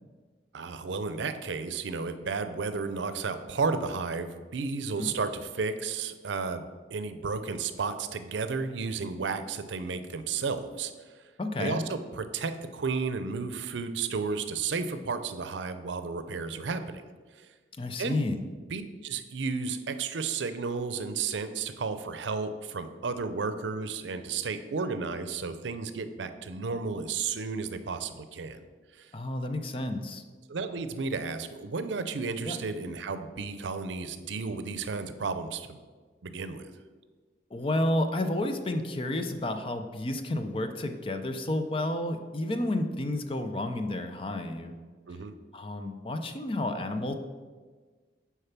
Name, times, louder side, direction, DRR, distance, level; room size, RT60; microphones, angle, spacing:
voice 1, 0.5-10.9 11.6-17.1 18.0-18.2 18.7-28.6 29.0-29.1 30.5-35.8 36.2-36.7 45.1-45.3, right 4 dB, 90° right, 11 dB, 0.5 m, -33 dB
voice 2, 11.4-11.8 17.8-18.4 29.1-30.2 32.4-32.6 37.5-44.8 45.5-47.1, left 1 dB, 30° left, 7 dB, 0.5 m, -31 dB
6.6 x 4.7 x 5.8 m, 1.4 s
head